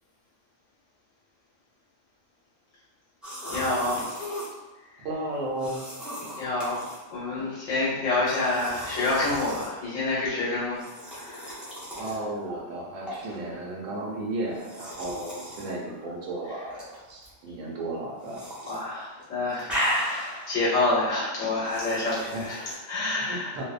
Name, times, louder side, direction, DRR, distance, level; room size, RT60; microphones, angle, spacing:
sound 1, 3.2-4.5 5.6-7.0 8.3-9.7 10.7-12.2 13.1-13.3 14.5-15.7 16.7-17.3 18.2-18.8 19.1-20.5 21.6-22.7, equal, ahead, 0.4 m, -35 dB
voice 1, 3.5-4.4 4.9-5.1 6.4-11.6 18.7-23.6, left 2 dB, 80° left, -8 dB, 1.0 m, -28 dB
voice 2, 5.0-5.9 11.9-18.5 22.3-22.4 23.3-23.6, right 2 dB, 80° right, -3 dB, 1.0 m, -34 dB
2.6 x 2.1 x 2.4 m, 1.2 s
omnidirectional pair, 1.4 m